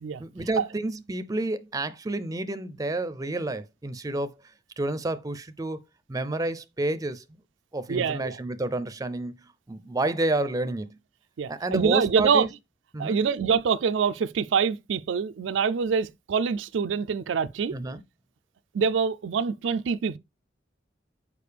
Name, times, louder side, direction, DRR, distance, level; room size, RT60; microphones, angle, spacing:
voice 1, 0.2-4.3 4.8-5.8 6.1-7.2 7.7-9.4 9.7-10.9 11.5-12.5 12.9-13.2 17.7-18.0, right 2 dB, 20° right, 0.5 m, -29 dB
voice 2, 7.9-8.4 11.4-12.5 13.0-17.7 18.7-20.2, right 6 dB, 90° right, 0.4 m, -25 dB
6.7 x 4.9 x 3.3 m
head